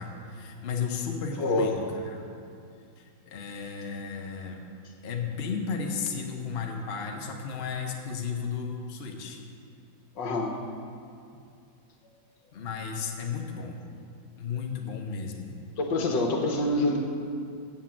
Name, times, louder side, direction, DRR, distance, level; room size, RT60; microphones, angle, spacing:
voice 1, 0.0-2.3 3.0-4.7 5.0-9.4 12.5-13.8 14.4-15.6, left 5 dB, 45° left, 2 dB, 0.9 m, -34 dB
voice 2, 1.4-1.7 10.2-10.5 15.8-17.0, left 2 dB, 75° left, 2 dB, 1.7 m, -26 dB
8.1 x 7.4 x 7.4 m, 2.4 s
omnidirectional pair, 2.0 m